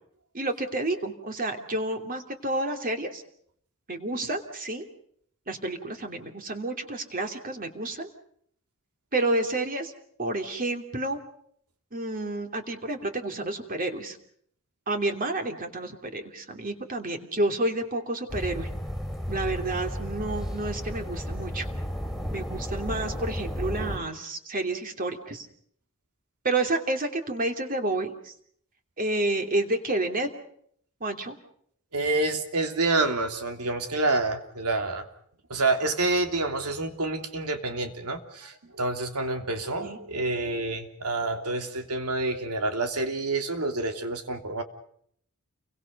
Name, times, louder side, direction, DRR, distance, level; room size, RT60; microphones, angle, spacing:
voice 1, 0.3-3.2 3.9-4.8 5.5-8.1 9.1-9.9 10.2-11.2 11.9-14.2 14.9-18.7 19.3-21.7 22.3-25.5 26.4-28.3 29.0-30.3 31.0-31.3 39.8-40.0, right 2 dB, 40° right, 5 dB, 2.9 m, -30 dB
sound 1, 18.3-24.0, equal, ahead, 3.3 m, -33 dB
voice 2, 31.9-35.1 35.5-44.6, right 2 dB, 90° right, 6 dB, 3.1 m, -28 dB
30.0 x 23.5 x 5.4 m, 0.66 s
head